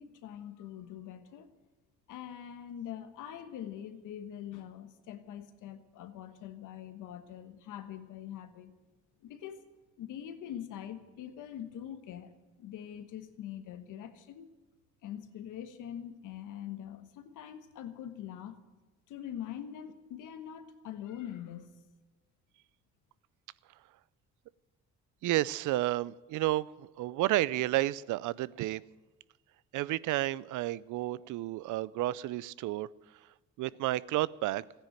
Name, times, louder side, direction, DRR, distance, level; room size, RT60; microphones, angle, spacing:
voice 1, 0.0-1.5 2.1-8.7 9.2-9.7 10.0-12.3 12.6-14.5 15.0-18.6 19.1-21.7, left 10 dB, 85° left, 9 dB, 1.3 m, -43 dB
voice 2, 25.2-28.8 29.7-32.9 33.6-34.6, right 16 dB, 80° right, 21 dB, 0.5 m, -31 dB
15.0 x 10.0 x 8.9 m, 1.2 s
cardioid pair, 90°, 30 cm